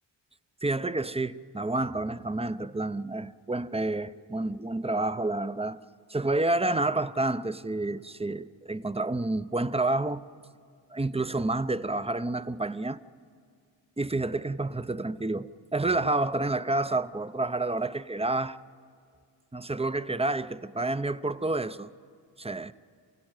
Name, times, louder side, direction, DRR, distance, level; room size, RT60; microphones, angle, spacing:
voice 1, 0.6-5.8 6.1-10.2 10.9-13.0 14.0-18.6 19.5-21.9 22.4-22.7, right 2 dB, 15° right, 0.6 m, -29 dB
27.0 x 16.5 x 9.2 m
cardioid pair, 50°, 45 cm